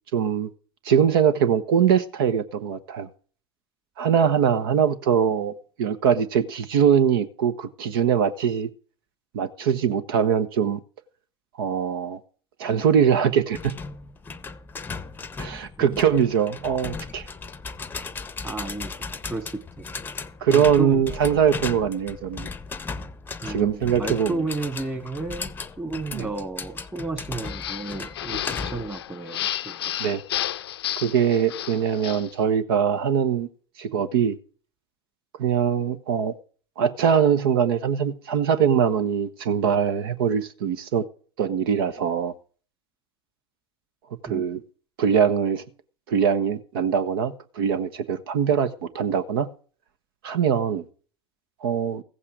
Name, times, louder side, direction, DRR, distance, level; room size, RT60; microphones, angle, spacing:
voice 1, 0.1-0.5 0.8-3.1 4.0-8.7 9.3-10.8 11.6-12.2 12.6-13.7 15.4-17.3 20.4-22.5 23.5-24.4 26.1-26.3 30.0-30.2 31.0-33.5 33.8-34.4 35.4-36.3 36.8-41.0 41.4-42.3 44.2-44.6 45.0-45.6 46.1-49.5 50.2-50.8 51.6-52.0, right 8 dB, 65° right, 1.1 m, -22 dB
sound 1, 13.5-29.0, left 4 dB, 15° left, 0.8 m, -36 dB
voice 2, 18.4-19.9 20.5-21.0 23.4-30.0 44.3-44.4, right 3 dB, 15° right, 2.2 m, -33 dB
sound 2, 27.4-32.3, left 12 dB, 70° left, 0.6 m, -32 dB
15.5 x 8.3 x 5.0 m
figure-of-eight pair, 85°, 13 cm